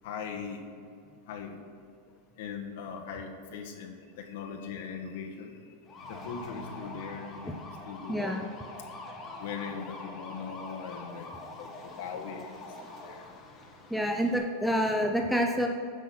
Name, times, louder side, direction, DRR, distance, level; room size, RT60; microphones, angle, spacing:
voice 1, 0.0-0.6 1.3-1.6 2.4-5.7 6.1-8.4 9.4-13.3, left 6 dB, 70° left, 1 dB, 1.4 m, -40 dB
sound 1, 5.9-14.4, left 2 dB, 20° left, 1.4 m, -44 dB
voice 2, 8.1-8.4 13.9-15.7, equal, ahead, 2 dB, 0.6 m, -27 dB
10.0 x 6.1 x 5.9 m, 2.4 s
supercardioid pair, 155°, 0 cm